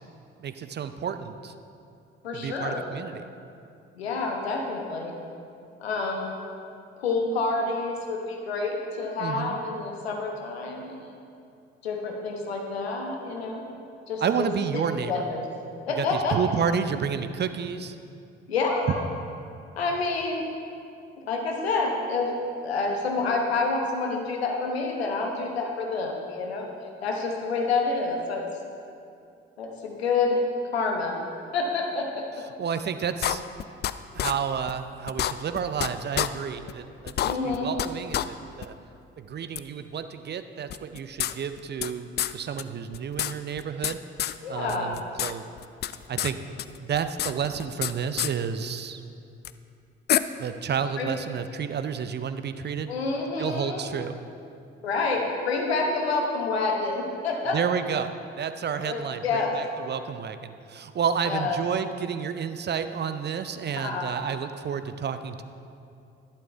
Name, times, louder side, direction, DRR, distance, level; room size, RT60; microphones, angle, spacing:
voice 1, 0.4-1.5 2.3-3.3 9.2-9.6 14.2-15.1 16.0-18.0 32.6-33.4 34.1-38.8 39.2-44.0 44.5-45.4 46.1-46.4 46.8-49.0 50.4-52.9 53.4-54.2 57.5-65.4, right 7 dB, 35° right, 10 dB, 0.6 m, -30 dB
voice 2, 2.2-2.8 4.0-5.1 5.8-6.3 7.0-11.0 11.8-13.6 14.1-14.8 15.1-15.4 15.9-16.4 18.5-19.0 19.8-20.4 21.2-22.3 22.6-26.7 27.0-28.4 29.6-30.4 30.7-31.1 31.5-32.3 37.2-37.7 44.4-45.0 51.0-51.1 52.9-53.8 54.8-57.6 58.8-59.5 61.3-61.6 63.7-64.1, left 3 dB, 80° left, 1 dB, 1.1 m, -28 dB
sound 1, 33.2-33.9 34.2-34.3 34.7-34.8 35.1-35.9 36.2-36.3 36.7-36.8 37.1-37.9 38.1-38.3 38.6-38.7 39.6-39.7 40.7-41.9 42.2-42.3 42.6-42.7 42.9-43.9 44.2-44.4 44.7-45.3 45.6-46.3 46.6-47.9 48.2-48.3 49.5-49.6 50.1-50.2, left 12 dB, 35° left, 0.4 m, -27 dB
11.5 x 11.0 x 3.5 m, 2.5 s
figure-of-eight pair, 45°, 31 cm